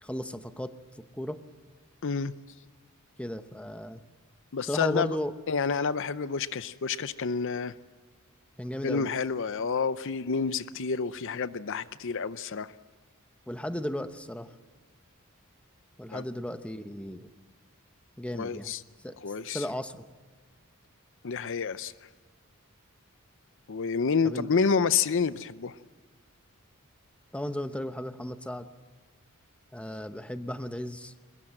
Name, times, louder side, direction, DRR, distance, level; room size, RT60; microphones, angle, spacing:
voice 1, 0.0-0.7 1.1-1.4 3.2-4.0 4.7-5.3 8.6-9.1 13.5-14.5 16.0-17.3 18.2-18.7 19.0-19.1 19.5-20.0 24.2-24.5 27.3-28.7 29.7-31.3, left 1 dB, 5° left, 9 dB, 0.9 m, -35 dB
voice 2, 2.0-2.3 4.5-5.2 5.5-7.7 8.8-12.7 16.1-16.3 18.3-18.8 19.2-19.7 21.2-21.9 23.7-25.8, left 5 dB, 60° left, 15 dB, 0.6 m, -29 dB
23.0 x 21.0 x 7.6 m, 1.5 s
head